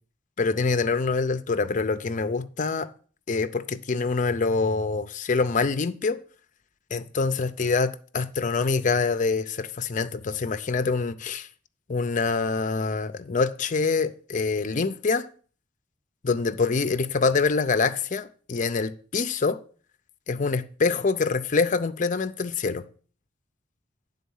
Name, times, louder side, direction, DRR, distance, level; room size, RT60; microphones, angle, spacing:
voice 1, 0.4-2.9 3.3-6.2 6.9-11.5 11.9-15.3 16.2-19.6 20.3-22.8, left 4 dB, 40° left, 0.5 m, -25 dB
9.4 x 4.0 x 7.1 m
head